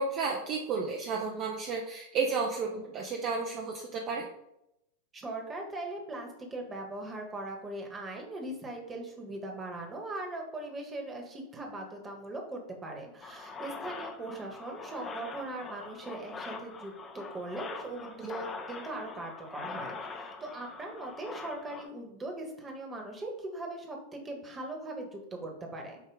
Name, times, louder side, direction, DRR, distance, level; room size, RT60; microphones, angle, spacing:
voice 1, 0.0-4.3, right 4 dB, 35° right, 0 dB, 0.8 m, -32 dB
voice 2, 5.1-26.0, right 2 dB, 20° right, 2 dB, 1.5 m, -40 dB
sound 1, 13.2-21.9, left 4 dB, 20° left, 0.8 m, -43 dB
8.2 x 2.8 x 4.8 m, 0.85 s
figure-of-eight pair, 90°, 0 cm